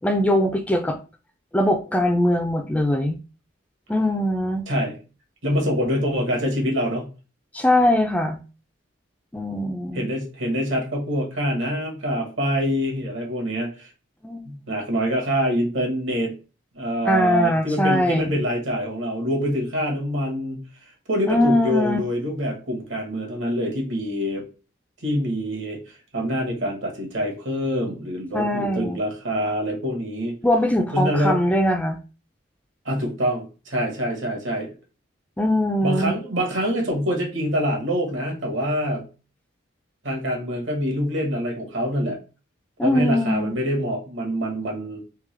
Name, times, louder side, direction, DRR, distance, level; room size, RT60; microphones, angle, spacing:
voice 1, 0.0-1.0 1.5-3.2 3.9-4.6 7.5-8.4 9.3-10.1 14.2-14.4 17.1-18.3 21.3-22.0 28.3-29.0 30.4-32.0 35.4-36.2 42.8-43.5, left 1 dB, 5° left, 4 dB, 0.3 m, -21 dB
voice 2, 4.7-5.0 5.4-7.0 9.9-13.9 14.4-16.3 16.7-20.6 21.1-24.5 25.0-30.3 30.9-31.5 32.8-34.7 35.8-39.0 40.0-42.2 42.8-45.0, equal, 70° right, 1 dB, 1.4 m, -25 dB
3.6 x 3.2 x 3.3 m, 0.33 s
head